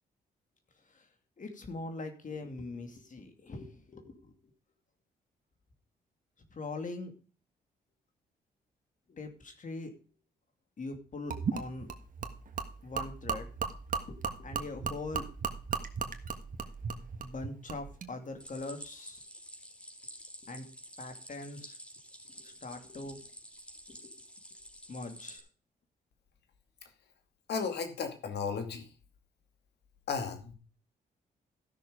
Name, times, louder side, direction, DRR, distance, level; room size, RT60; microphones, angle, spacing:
voice 1, 1.4-4.3 6.5-7.1 9.1-9.9 10.8-11.9 12.8-13.5 14.1-15.3 17.2-19.2 20.4-20.6 21.0-21.8 22.4-23.2 23.9-24.1 24.9-25.4, left 2 dB, 50° left, 5 dB, 2.6 m, -42 dB
Gurgling / Liquid, 11.3-18.1, right 5 dB, 50° right, 1.6 m, -37 dB
Stream, 18.4-25.4, equal, 5° left, 3.2 m, -50 dB
voice 2, 27.5-28.9 30.1-30.5, left 5 dB, 75° left, 7 dB, 2.5 m, -34 dB
14.0 x 6.4 x 5.2 m, 0.37 s
supercardioid pair, 65°, 17 cm